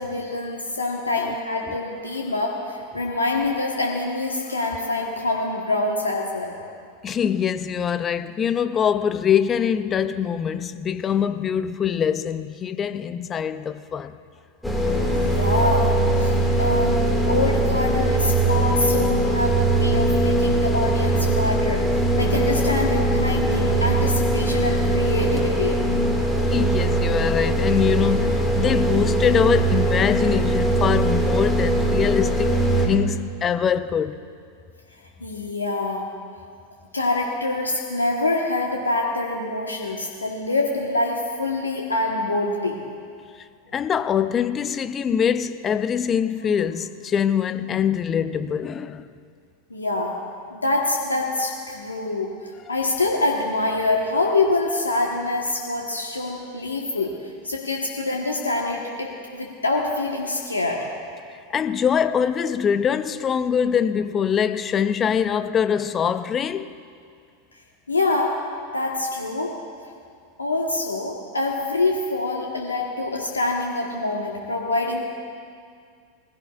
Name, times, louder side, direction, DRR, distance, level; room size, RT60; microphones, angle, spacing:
voice 1, 0.0-6.5 15.1-16.3 16.6-17.0 17.3-25.8 35.2-36.1 36.9-42.8 49.7-50.1 50.5-52.3 52.7-60.8 67.9-68.4 68.7-69.5 70.4-75.0, left 2 dB, 90° left, 1.2 m, -25 dB
voice 2, 7.0-14.2 26.5-34.2 43.7-49.1 61.5-66.8, left 8 dB, 30° left, 0.6 m, -23 dB
sound 1, 14.6-32.9, right 1 dB, 5° left, 1.9 m, -21 dB
20.5 x 16.0 x 2.4 m
figure-of-eight pair, 90°, 0 cm